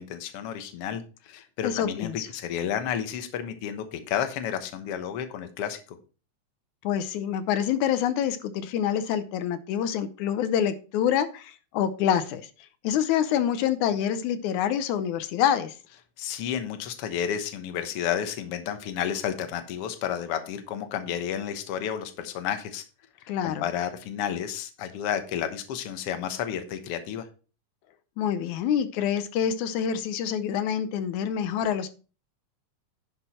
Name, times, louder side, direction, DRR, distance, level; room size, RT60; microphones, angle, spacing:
voice 1, 0.0-5.8 16.2-22.8 23.4-27.3, left 9 dB, 60° left, 8 dB, 1.9 m, -31 dB
voice 2, 1.6-2.3 6.8-12.5 12.8-15.8 23.3-23.7 28.2-31.9, left 9 dB, 85° left, 12 dB, 2.2 m, -26 dB
10.5 x 6.2 x 4.3 m, 0.35 s
omnidirectional pair, 3.4 m